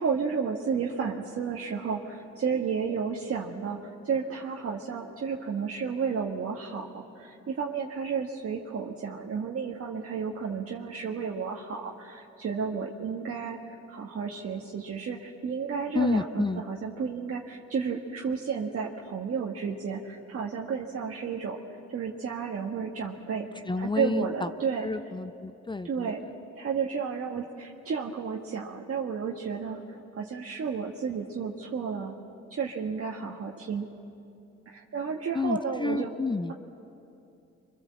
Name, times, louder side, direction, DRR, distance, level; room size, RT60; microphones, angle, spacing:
voice 1, 0.0-13.6 13.9-21.6 21.9-24.9 25.8-26.2 26.6-32.1 32.5-33.9 34.7-36.1, right 6 dB, 50° right, -2 dB, 1.7 m, -32 dB
voice 2, 15.9-16.6 23.7-24.5 24.8-26.1 35.3-36.5, left 3 dB, 15° left, 12 dB, 0.5 m, -30 dB
28.5 x 25.0 x 7.6 m, 2.7 s
cardioid pair, 90°, 30 cm